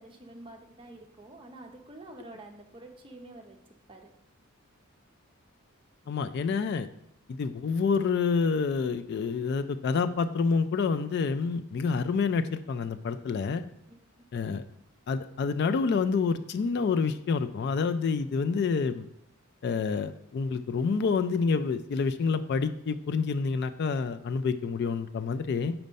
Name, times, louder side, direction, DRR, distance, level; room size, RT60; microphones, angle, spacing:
voice 1, 0.0-4.1 13.9-14.3, right 2 dB, 25° right, 3 dB, 0.7 m, -48 dB
voice 2, 6.1-6.9 7.3-13.6 14.3-14.6 15.1-19.1 19.6-25.7, left 5 dB, 50° left, 11 dB, 0.3 m, -28 dB
5.3 x 4.5 x 5.2 m, 0.76 s
head